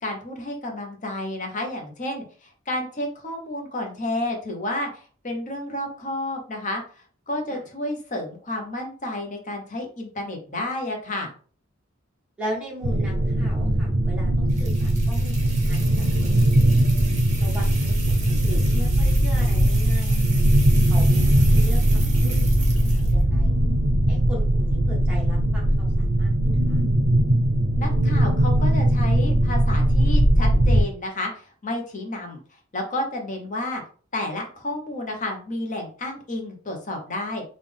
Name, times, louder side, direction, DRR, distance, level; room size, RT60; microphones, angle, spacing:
voice 1, 0.0-11.3 27.8-32.4 32.7-33.8 34.1-37.4, left 1 dB, 40° left, 2 dB, 0.9 m, -31 dB
voice 2, 12.4-15.9 16.2-16.7 17.4-20.2 20.9-22.5 22.7-23.6 24.1-26.8, equal, 5° right, -5 dB, 1.5 m, -38 dB
sound 1, 12.8-30.8, right 1 dB, 65° right, 0.6 m, -20 dB
sound 2, 14.5-23.2, right 3 dB, 35° right, 1.0 m, -38 dB
3.5 x 2.5 x 3.5 m, 0.42 s
head